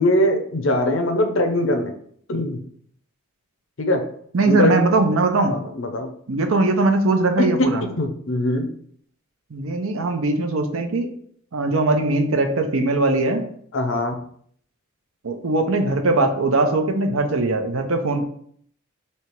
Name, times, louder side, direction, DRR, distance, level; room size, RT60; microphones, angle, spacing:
voice 1, 0.0-1.9 2.3-2.6 3.8-4.0 4.4-4.8 5.5-6.1 7.4-7.7 8.0-8.7 13.7-14.2, left 1 dB, 65° left, 5 dB, 0.7 m, -21 dB
voice 2, 4.3-5.5 6.3-7.8 9.5-11.1 11.5-13.4 15.2-18.2, right 2 dB, 75° right, 5 dB, 0.6 m, -20 dB
3.3 x 2.9 x 4.4 m, 0.62 s
head